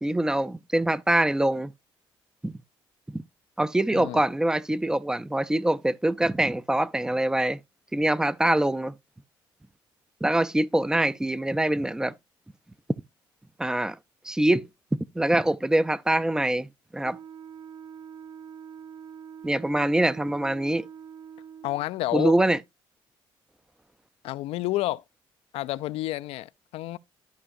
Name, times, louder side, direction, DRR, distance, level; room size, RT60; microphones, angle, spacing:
voice 1, 0.0-1.7 2.4-2.5 3.1-3.2 3.6-7.6 7.9-8.9 10.2-12.1 13.6-14.0 14.2-16.7 16.9-17.2 19.4-20.9 22.1-22.6, right 1 dB, 5° right, 0.4 m, -24 dB
Wind instrument woodwind instrument, 17.0-21.9, right 8 dB, 45° right, 0.7 m, -44 dB
voice 2, 21.6-22.4 24.2-25.0 25.5-27.0, left 16 dB, 75° left, 0.4 m, -30 dB
12.5 x 5.7 x 2.5 m
cardioid pair, 90°, 10 cm